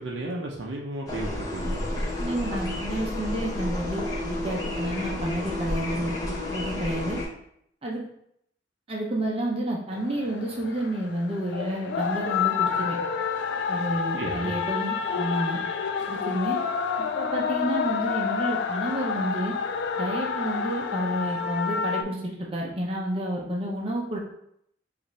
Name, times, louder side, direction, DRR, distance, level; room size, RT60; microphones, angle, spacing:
voice 1, 0.0-1.9 14.2-14.6, right 1 dB, 75° right, -1 dB, 0.6 m, -34 dB
sound 1, 1.1-7.3, left 1 dB, 20° left, 0.8 m, -31 dB
voice 2, 2.2-7.2 7.8-8.0 8.9-13.0 13.7-15.6 16.1-16.6 17.1-19.5 20.0-24.2, right 1 dB, 30° right, -2 dB, 0.6 m, -30 dB
sound 2, 9.9-22.0, left 6 dB, 65° left, 0.3 m, -29 dB
5.1 x 2.5 x 3.1 m, 0.72 s
head